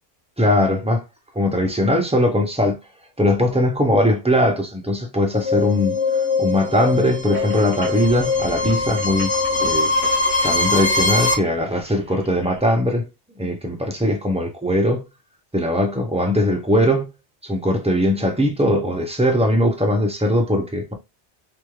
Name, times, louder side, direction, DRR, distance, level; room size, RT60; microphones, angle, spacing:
voice 1, 0.4-1.0 1.4-2.8 3.2-6.0 6.4-9.3 9.6-9.9 10.4-13.1 13.4-15.0 15.5-17.0 17.4-20.9, left 1 dB, 10° right, 0.4 m, -20 dB
sound 1, 5.3-11.3, left 3 dB, 85° left, 1.2 m, -22 dB
sound 2, 7.2-12.6, right 2 dB, 35° right, 1.5 m, -38 dB
3.1 x 2.9 x 2.3 m
omnidirectional pair, 1.2 m